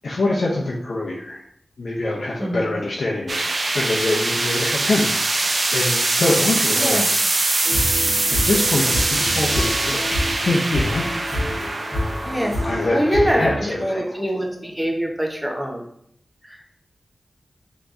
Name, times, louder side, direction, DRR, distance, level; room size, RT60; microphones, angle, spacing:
voice 1, 0.0-1.4 1.8-7.2 8.3-10.2 10.5-11.0 11.5-11.7 12.6-14.0, left 2 dB, 70° left, -4 dB, 0.7 m, -24 dB
sound 1, 3.3-14.4, right 2 dB, 50° right, 0.5 m, -23 dB
voice 2, 6.8-7.1 12.2-12.5 12.9-13.5 13.8-15.8 16.5-16.6, equal, 5° right, 0 dB, 0.9 m, -23 dB
sound 2, 7.6-13.6, left 1 dB, 35° left, 1.5 m, -27 dB
5.8 x 3.0 x 2.6 m, 0.68 s
wide cardioid pair, 105°, 0 cm